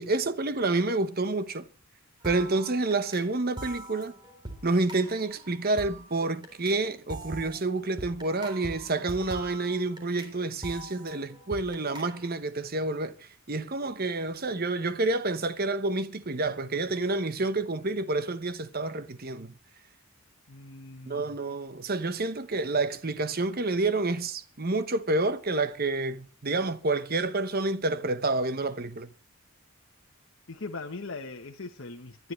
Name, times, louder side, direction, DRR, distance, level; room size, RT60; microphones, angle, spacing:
voice 1, 0.0-1.7 2.2-4.1 4.6-13.1 13.5-19.5 21.1-29.1, right 2 dB, 45° right, 1.0 m, -29 dB
sound 1, 2.2-3.3 3.6-6.8 7.1-10.4 10.6-12.4, right 2 dB, 20° right, 3.7 m, -42 dB
voice 2, 20.5-21.3 30.5-32.3, left 3 dB, 65° left, 1.1 m, -40 dB
24.0 x 11.0 x 3.2 m
head